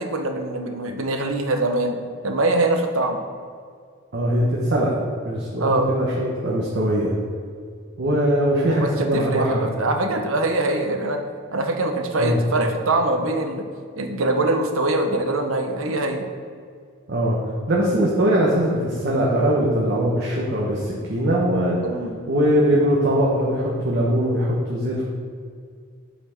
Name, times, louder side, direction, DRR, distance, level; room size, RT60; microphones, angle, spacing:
voice 1, 0.0-1.9 2.2-3.2 5.6-5.9 8.8-11.2 11.5-13.6 14.0-16.3 21.8-22.1, right 2 dB, 80° right, 5 dB, 0.8 m, -23 dB
voice 2, 4.1-4.9 5.2-7.1 8.0-9.7 12.1-12.4 17.1-17.4 17.7-21.8 22.3-25.0, right 1 dB, 55° right, -4 dB, 1.0 m, -21 dB
8.1 x 4.3 x 4.4 m, 2.2 s
head